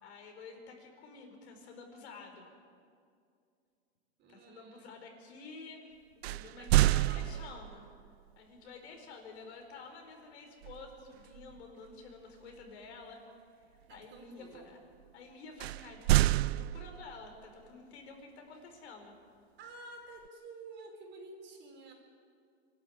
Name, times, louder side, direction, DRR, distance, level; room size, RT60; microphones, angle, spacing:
voice 1, 0.0-2.5 4.3-7.9 8.3-13.2 13.7-14.8 15.1-19.2, left 4 dB, 75° left, 3 dB, 4.7 m, -50 dB
voice 2, 4.2-4.9 6.6-7.5 13.9-14.7 19.6-21.9, right 3 dB, 35° right, 1 dB, 4.7 m, -51 dB
sound 1, 6.2-7.9 10.6-10.9 11.3-11.6 15.6-17.3, right 17 dB, 75° right, 0.5 m, -28 dB
25.0 x 12.5 x 8.8 m, 2.3 s
supercardioid pair, 130°, 33 cm